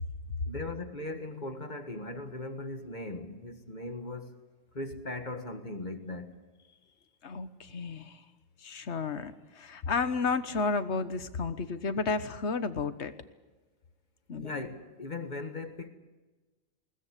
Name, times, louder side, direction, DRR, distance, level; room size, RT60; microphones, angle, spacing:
voice 1, 0.5-4.4 4.7-6.4 14.4-15.9, left 2 dB, 35° left, 1.8 m, -39 dB
voice 2, 7.2-8.2 8.6-13.1 14.3-14.6, left 4 dB, 55° left, 1.4 m, -32 dB
21.5 x 19.5 x 8.4 m
omnidirectional pair, 1.4 m